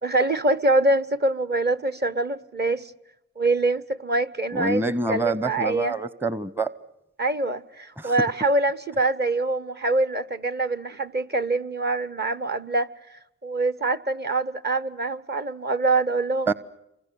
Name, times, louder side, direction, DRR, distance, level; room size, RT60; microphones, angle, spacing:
voice 1, 0.0-2.9 3.4-5.9 7.2-12.9 13.4-16.5, right 2 dB, 35° right, 1.1 m, -24 dB
voice 2, 4.5-6.7 8.0-8.1 16.5-16.6, right 3 dB, 5° right, 0.9 m, -26 dB
28.0 x 24.5 x 7.0 m
supercardioid pair, 65°, 29 cm